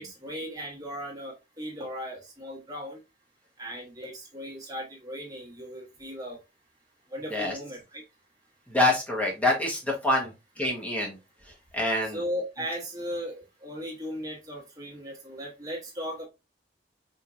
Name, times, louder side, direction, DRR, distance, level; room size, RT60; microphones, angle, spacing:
voice 1, 0.0-3.0 3.6-6.4 7.1-8.0 10.2-10.3 12.0-16.3, equal, 20° right, -3 dB, 1.7 m, -37 dB
voice 2, 8.7-10.3 10.6-11.2 11.7-12.2, left 2 dB, 10° left, -2 dB, 1.2 m, -26 dB
4.5 x 2.8 x 2.5 m, 0.25 s
head